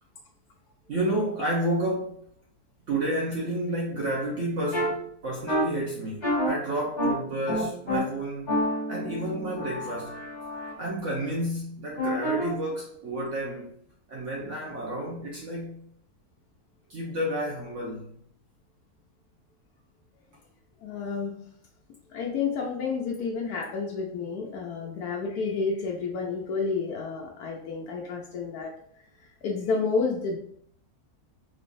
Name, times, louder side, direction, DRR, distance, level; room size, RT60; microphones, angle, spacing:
voice 1, 0.9-2.2 2.9-8.6 8.9-10.2 10.8-13.7 14.1-15.8 16.9-18.2, right 1 dB, 60° right, 0.9 m, -31 dB
sound 1, 4.7-4.9 5.5-5.6 6.2-6.5 7.0-7.1 7.5-8.0 8.5-10.7 12.0-12.5, equal, 20° left, 1.4 m, -28 dB
voice 2, 20.8-21.4 22.1-28.7 29.4-30.4, left 4 dB, 80° left, 1.1 m, -30 dB
3.7 x 3.2 x 2.5 m
omnidirectional pair, 1.6 m